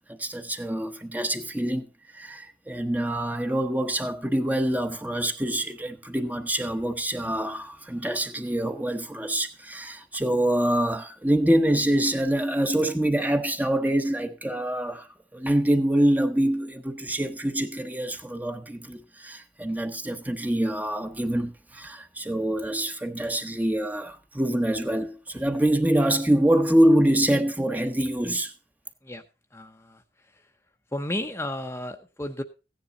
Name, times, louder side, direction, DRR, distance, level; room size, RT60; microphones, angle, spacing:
voice 1, 0.2-1.9 2.1-28.5, right 1 dB, 10° right, 0.9 m, -25 dB
voice 2, 29.5-30.0 30.3-30.5 30.9-32.4, left 1 dB, 15° left, 0.8 m, -33 dB
15.5 x 10.0 x 3.9 m
head